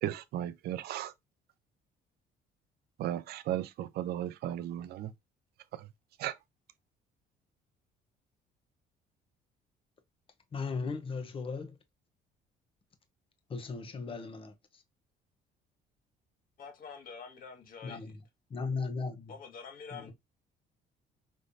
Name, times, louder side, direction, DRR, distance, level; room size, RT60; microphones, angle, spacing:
voice 1, 0.0-1.1 3.0-5.1 5.7-5.9 6.2-6.4, right 12 dB, 70° right, 0.5 m, -35 dB
voice 2, 10.5-11.7 13.5-14.4 17.8-18.1 18.5-19.3 19.9-20.1, left 4 dB, 30° left, 0.8 m, -36 dB
voice 3, 16.6-18.1 19.3-20.1, left 6 dB, 55° left, 1.6 m, -47 dB
5.2 x 3.1 x 2.6 m
cardioid pair, 110°, 17 cm